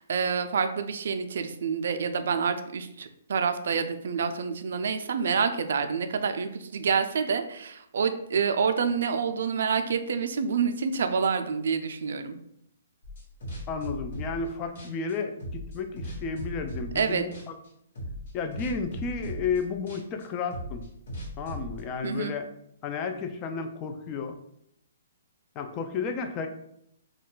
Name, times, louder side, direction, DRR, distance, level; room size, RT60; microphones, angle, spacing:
voice 1, 0.0-12.4 17.0-17.2 22.0-22.3, right 6 dB, 70° right, 8 dB, 0.3 m, -27 dB
sound 1, 13.0-14.5 14.7-17.1 17.3-17.7 17.9-21.8, equal, 65° left, 1.3 m, -38 dB
voice 2, 13.7-17.5 18.3-20.8 21.4-22.5 22.8-24.4 25.6-26.5, left 5 dB, 25° left, 6 dB, 0.3 m, -32 dB
2.4 x 2.2 x 3.7 m, 0.75 s
hypercardioid pair, 145°, 0 cm